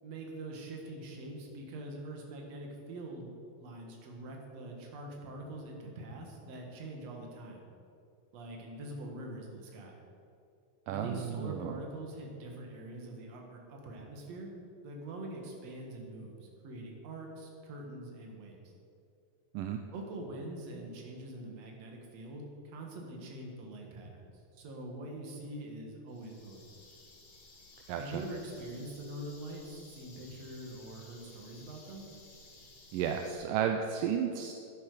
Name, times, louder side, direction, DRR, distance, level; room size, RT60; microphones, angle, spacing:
voice 1, 0.0-7.6 8.3-10.0 10.9-18.6 19.9-26.7 28.0-32.1, right 1 dB, 55° right, 0 dB, 2.5 m, -44 dB
voice 2, 10.9-11.8 19.5-19.8 27.9-28.2 32.9-34.5, right 8 dB, 80° right, 5 dB, 2.1 m, -33 dB
sound 1, 26.1-33.3, left 2 dB, 50° left, 2.8 m, -56 dB
11.5 x 10.5 x 4.9 m, 2.6 s
omnidirectional pair, 4.1 m